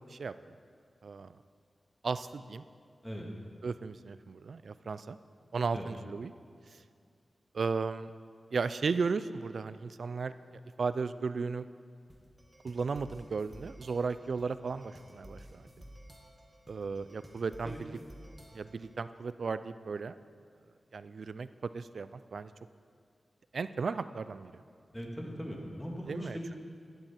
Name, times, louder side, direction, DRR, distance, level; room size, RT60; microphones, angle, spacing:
voice 1, 1.0-1.4 2.0-2.6 3.6-5.2 5.5-6.3 7.5-8.1 8.5-11.7 12.6-15.7 16.7-18.0 18.5-20.2 20.9-22.5 23.5-24.5 26.1-26.4, right 4 dB, 75° right, 14 dB, 0.3 m, -35 dB
sound 1, 12.1-18.9, equal, 10° right, 1.6 m, -53 dB
voice 2, 24.9-26.5, equal, 10° left, -1 dB, 2.0 m, -40 dB
11.0 x 10.5 x 4.4 m, 2.2 s
wide cardioid pair, 80°, 0 cm